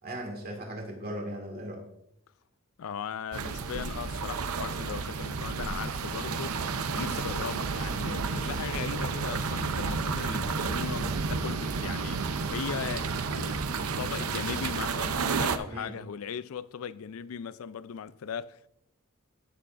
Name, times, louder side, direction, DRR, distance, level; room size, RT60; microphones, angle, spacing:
voice 1, 0.0-1.8 11.0-11.1 15.7-16.0, right 1 dB, 45° right, 2.0 m, -38 dB
voice 2, 2.8-12.2 12.5-18.7, left 7 dB, 75° left, 0.4 m, -38 dB
sound 1, 3.3-15.6, right 4 dB, 90° right, 0.6 m, -31 dB
14.0 x 7.0 x 2.5 m
head